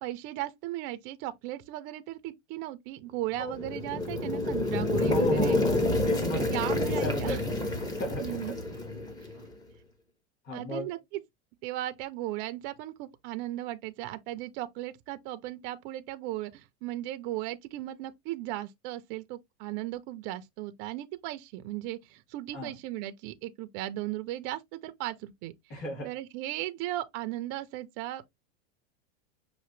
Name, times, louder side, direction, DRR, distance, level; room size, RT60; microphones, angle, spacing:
voice 1, 0.0-5.6 6.3-7.4 8.2-8.6 10.5-11.2 11.6-28.4, right 15 dB, 30° right, 0.4 m, -36 dB
sound 1, 3.4-9.4, left 2 dB, 10° left, 0.7 m, -28 dB
voice 2, 5.0-8.2 9.4-9.5 10.4-10.9 22.5-22.7 25.7-26.1, equal, 35° left, 2.7 m, -35 dB
5.8 x 2.6 x 3.1 m
supercardioid pair, 150°, 36 cm